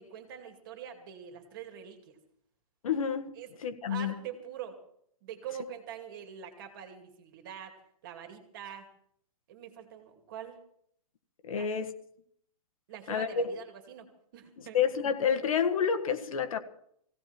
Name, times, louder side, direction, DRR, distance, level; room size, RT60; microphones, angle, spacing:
voice 1, 0.0-2.2 3.3-3.5 3.9-4.8 5.2-7.7 8.0-8.9 9.5-10.6 11.6-11.7 12.9-14.8, right 9 dB, 35° right, 2.6 m, -44 dB
voice 2, 2.8-3.3 3.6-4.1 11.4-11.9 13.1-13.5 14.6-16.6, left 7 dB, 65° left, 1.7 m, -29 dB
18.5 x 17.0 x 4.5 m
hypercardioid pair, 175°, 19 cm